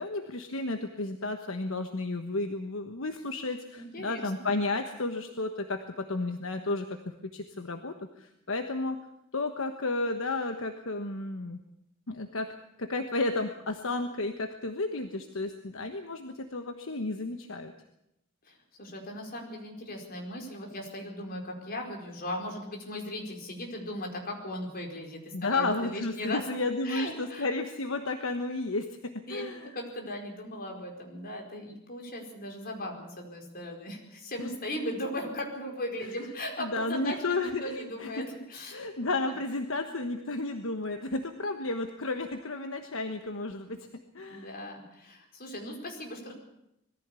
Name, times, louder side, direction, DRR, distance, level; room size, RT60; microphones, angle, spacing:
voice 1, 0.0-7.0 7.2-9.0 9.3-11.6 12.1-12.5 12.8-17.7 25.3-29.7 34.4-34.5 36.0-36.3 36.6-38.2 38.7-43.9 44.1-44.5, left 2 dB, 70° left, 6 dB, 1.3 m, -32 dB
voice 2, 3.8-4.3 18.4-26.4 26.8-27.5 29.2-29.4 29.7-39.4 44.3-46.3, left 1 dB, 45° left, 1 dB, 4.7 m, -38 dB
21.0 x 15.0 x 8.3 m, 0.82 s
head